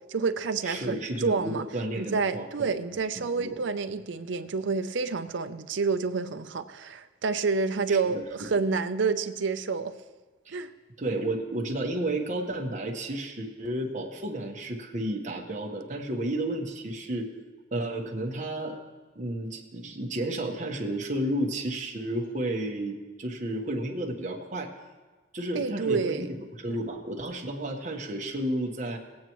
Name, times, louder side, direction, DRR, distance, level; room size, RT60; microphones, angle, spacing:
voice 1, 0.1-1.7 1.9-10.0 10.5-10.7 25.5-26.3, right 4 dB, 70° right, 10 dB, 0.5 m, -29 dB
voice 2, 0.6-2.7 3.1-3.6 7.9-8.6 10.4-10.5 11.0-17.3 17.7-18.8 19.1-24.7 25.3-29.0, right 1 dB, 40° right, 1 dB, 1.3 m, -32 dB
19.0 x 8.6 x 3.1 m, 1.3 s
head